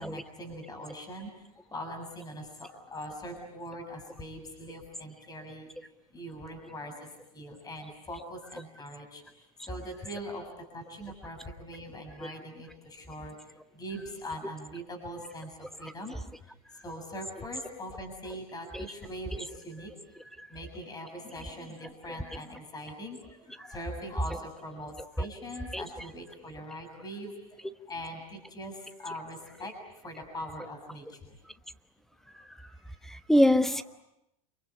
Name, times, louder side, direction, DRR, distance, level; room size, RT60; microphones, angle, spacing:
voice 1, 0.0-16.6 16.8-19.9 20.5-31.4 32.3-33.1 33.7-33.8, equal, 20° left, 4 dB, 7.1 m, -42 dB
voice 2, 33.0-33.8, equal, ahead, 11 dB, 1.1 m, -25 dB
28.5 x 23.0 x 8.6 m, 0.85 s
hypercardioid pair, 110°, 19 cm